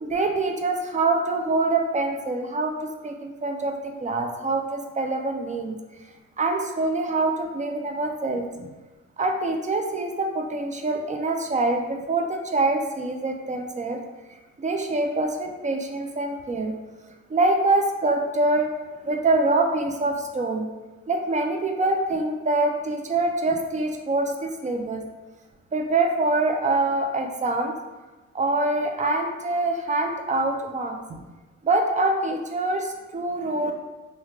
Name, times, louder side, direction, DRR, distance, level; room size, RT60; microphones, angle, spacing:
voice 1, 0.0-3.7 4.0-5.8 6.4-8.7 9.2-14.0 14.6-16.7 17.3-18.7 19.0-20.7 21.1-25.0 25.7-27.7 28.3-31.2 31.6-33.7, right 2 dB, 25° right, 4 dB, 0.4 m, -25 dB
3.1 x 2.4 x 3.1 m, 1.2 s
cardioid pair, 90°, 30 cm